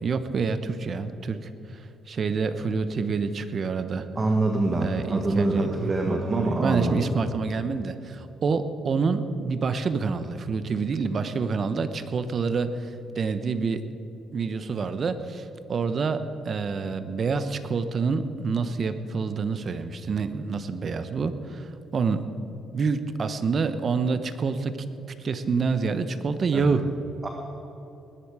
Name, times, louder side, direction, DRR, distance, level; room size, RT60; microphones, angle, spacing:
voice 1, 0.0-1.4 2.1-4.0 4.8-13.8 14.3-22.2 22.7-24.8 25.2-26.9, right 4 dB, 50° right, 10 dB, 0.9 m, -27 dB
voice 2, 4.1-7.0 26.5-26.7 27.2-27.3, right 2 dB, 30° right, 2 dB, 1.4 m, -25 dB
19.5 x 10.5 x 4.9 m, 3.0 s
cardioid pair, 90°, 0 cm